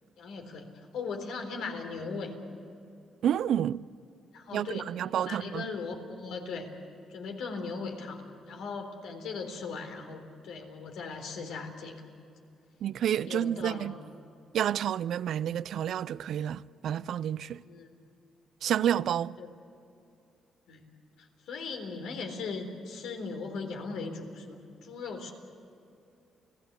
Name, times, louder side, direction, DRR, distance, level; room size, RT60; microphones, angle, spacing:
voice 1, 0.2-0.7 0.9-2.3 4.3-4.8 5.2-6.7 7.1-12.0 13.2-13.9 17.6-17.9 19.4-19.5 20.7-20.9 21.2-25.3, left 4 dB, 85° left, 3.8 m, -38 dB
voice 2, 3.2-3.9 4.5-5.7 12.8-13.9 14.5-17.6 18.6-19.4, right 10 dB, 70° right, 0.5 m, -29 dB
30.0 x 17.5 x 8.1 m
cardioid pair, 90°, 0 cm